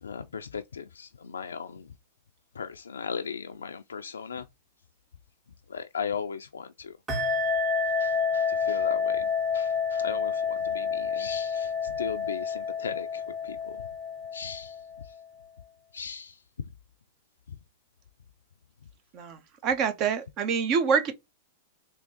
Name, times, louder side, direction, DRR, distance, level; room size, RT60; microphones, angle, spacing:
voice 1, 0.0-1.9 2.5-4.5 5.7-7.0 8.0-13.8 14.3-14.8 15.9-16.4 17.5-17.6, left 6 dB, 90° left, 0.3 m, -37 dB
sound 1, 7.1-15.2, left 5 dB, 25° right, 1.1 m, -29 dB
voice 2, 19.1-21.1, right 6 dB, 40° right, 1.0 m, -26 dB
3.5 x 2.8 x 3.7 m
hypercardioid pair, 110°, 0 cm